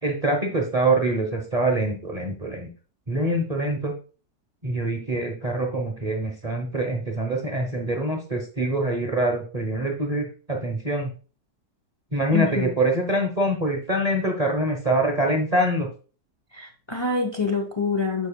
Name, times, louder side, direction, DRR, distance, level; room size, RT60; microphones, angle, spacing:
voice 1, 0.0-2.7 3.1-3.9 4.6-11.1 12.1-15.9, right 1 dB, 30° right, 0.8 m, -24 dB
voice 2, 12.3-12.7 16.5-18.3, left 4 dB, 25° left, 0.5 m, -26 dB
12.0 x 5.3 x 2.2 m
omnidirectional pair, 1.9 m